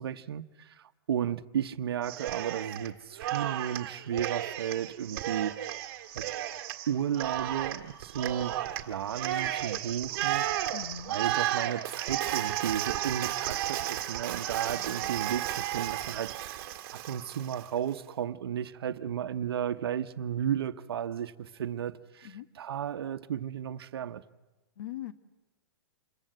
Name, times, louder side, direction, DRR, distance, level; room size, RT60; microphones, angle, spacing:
voice 1, 0.0-5.6 6.1-6.2 6.9-10.7 11.1-16.7 16.9-24.2, right 9 dB, 75° right, 1.0 m, -34 dB
Cheering, 2.0-2.9 3.2-17.7, right 12 dB, 40° right, 1.9 m, -33 dB
voice 2, 10.7-11.2 14.8-15.1 22.2-22.5 24.8-25.1, left 10 dB, 55° left, 1.3 m, -41 dB
27.0 x 22.0 x 7.9 m
hypercardioid pair, 165°, 13 cm